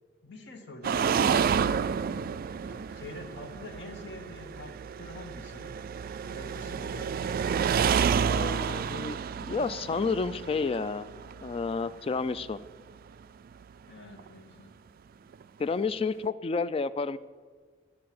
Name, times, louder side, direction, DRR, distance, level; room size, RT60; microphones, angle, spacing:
voice 1, 0.2-1.4 2.6-5.8 6.3-7.1 13.9-14.7, left 1 dB, 65° left, 4 dB, 1.4 m, -45 dB
sound 1, 0.8-12.5 14.2-14.3 15.3-15.4, right 7 dB, 50° right, 0.3 m, -30 dB
voice 2, 8.3-11.1 11.4-12.6 15.6-17.2, left 4 dB, 30° left, 15 dB, 0.3 m, -30 dB
13.5 x 4.7 x 7.7 m, 1.6 s
head